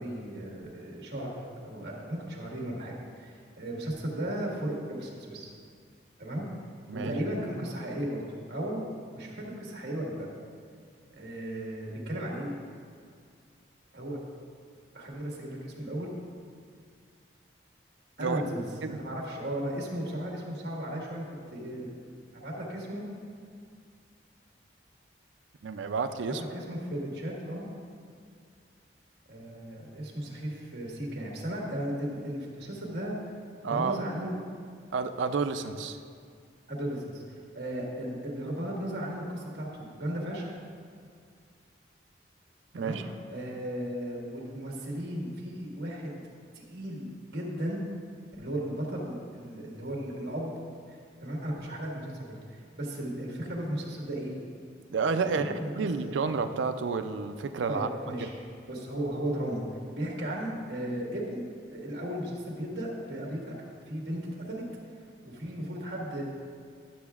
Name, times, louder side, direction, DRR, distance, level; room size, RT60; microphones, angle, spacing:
voice 1, 0.0-1.4 1.6-5.5 6.2-6.5 6.9-8.2 8.5-8.9 9.1-10.3 11.1-12.5 13.9-14.2 14.9-16.1 18.2-18.6 18.9-21.2 21.5-21.9 22.3-23.1 26.2-27.7 29.3-33.2 33.6-34.4 36.7-40.5 42.7-43.0 43.3-46.2 46.5-47.1 47.3-47.9 48.4-50.5 50.9-54.3 55.2-55.7 56.0-56.2 57.7-58.3 58.7-63.5 63.9-64.6 65.2-66.2, right 1 dB, 60° right, -2 dB, 1.5 m, -35 dB
voice 2, 25.6-26.4 33.6-34.0 34.9-36.0 42.7-43.0 54.9-57.9 58.2-58.3, right 5 dB, 85° right, 9 dB, 0.4 m, -30 dB
11.5 x 6.7 x 2.4 m, 2.2 s
head